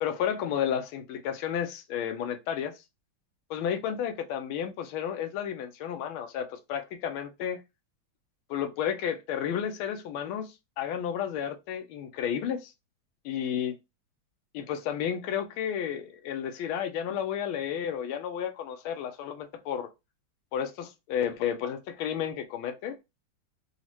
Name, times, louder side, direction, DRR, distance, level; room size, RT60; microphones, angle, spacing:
voice 1, 0.0-2.7 3.5-7.6 8.5-12.7 13.2-13.7 14.5-19.9 20.5-23.0, left 9 dB, 90° left, 1.4 m, -32 dB
4.1 x 2.4 x 2.9 m
omnidirectional pair, 2.2 m